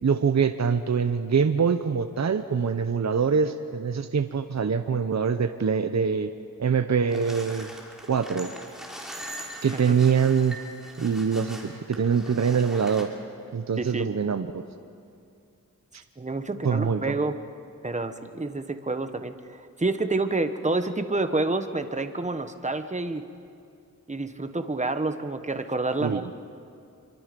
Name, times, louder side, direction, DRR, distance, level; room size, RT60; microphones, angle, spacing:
voice 1, 0.0-6.3 6.6-7.7 8.1-8.5 9.6-10.6 11.0-13.1 13.5-14.6 16.6-17.2 26.0-26.2, right 6 dB, 55° right, 9 dB, 0.8 m, -24 dB
sound 1, 7.1-13.1, equal, ahead, 3.6 m, -41 dB
voice 2, 13.8-14.1 16.2-17.4 17.8-23.2 24.1-26.3, right 2 dB, 20° right, 8 dB, 1.2 m, -28 dB
26.0 x 23.5 x 5.3 m, 2.5 s
wide cardioid pair, 75°, 34 cm